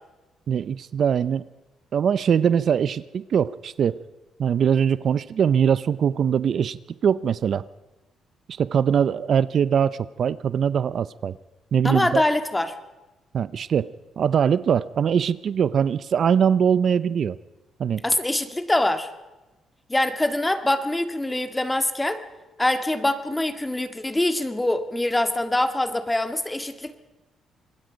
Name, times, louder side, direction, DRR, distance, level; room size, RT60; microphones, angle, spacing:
voice 1, 0.5-1.4 1.9-4.0 4.4-7.7 8.5-11.4 11.7-12.2 13.3-17.4 17.8-18.0, right 7 dB, 55° right, 17 dB, 0.6 m, -22 dB
voice 2, 11.8-12.8 18.0-19.1 19.9-22.2 22.6-27.0, left 1 dB, 10° left, 9 dB, 1.9 m, -24 dB
26.0 x 21.0 x 5.2 m, 1.1 s
cardioid pair, 90°, 0 cm